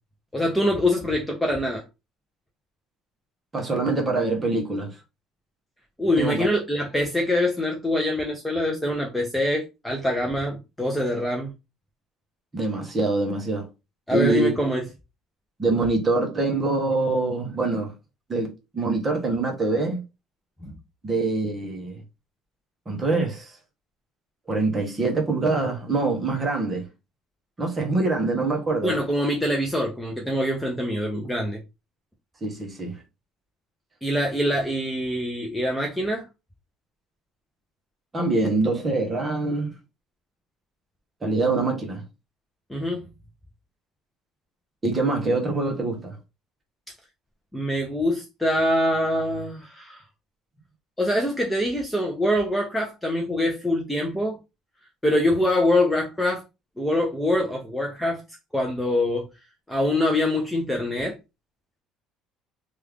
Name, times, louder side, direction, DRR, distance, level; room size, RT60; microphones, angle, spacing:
voice 1, 0.3-1.8 6.0-11.5 14.1-14.9 20.6-20.7 28.8-31.6 34.0-36.3 42.7-43.0 47.5-50.0 51.0-54.4 55.0-56.4 56.8-58.2 58.5-59.3 59.7-61.2, left 1 dB, 5° left, 0.5 m, -24 dB
voice 2, 3.5-5.0 6.2-6.5 12.5-13.7 14.1-14.5 15.6-17.9 18.3-20.0 21.0-22.0 22.9-23.5 24.5-26.9 27.6-29.0 32.4-33.0 38.1-39.8 41.2-42.0 44.8-46.2, right 3 dB, 15° right, 0.9 m, -24 dB
3.0 x 2.4 x 3.4 m
cardioid pair, 160°, 0 cm